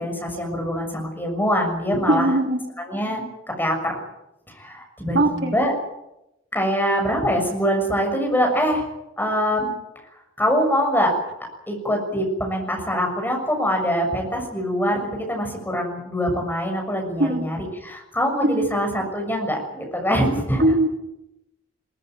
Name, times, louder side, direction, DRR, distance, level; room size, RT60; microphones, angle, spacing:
voice 1, 0.0-2.3 2.8-3.2 3.6-4.0 4.5-5.7 6.5-8.9 9.2-9.7 10.4-11.1 11.7-20.6, equal, 10° left, 2 dB, 6.7 m, -24 dB
voice 2, 2.1-2.6 5.1-5.5 17.2-17.5 18.4-18.7 20.6-20.9, right 1 dB, 55° right, 2 dB, 3.5 m, -20 dB
21.5 x 20.0 x 9.2 m, 0.90 s
head